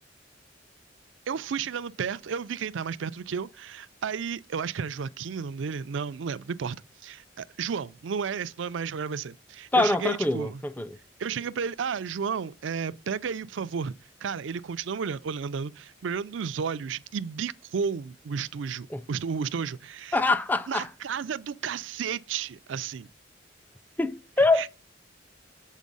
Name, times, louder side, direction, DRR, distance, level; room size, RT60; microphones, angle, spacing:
voice 1, 1.3-10.6 11.2-13.9 14.2-20.2 20.7-23.1 24.5-24.7, right 6 dB, 80° right, 0.4 m, -32 dB
voice 2, 9.7-10.9 18.9-19.0 20.1-20.9 24.0-24.6, left 2 dB, 10° left, 0.4 m, -24 dB
7.3 x 4.3 x 5.3 m
head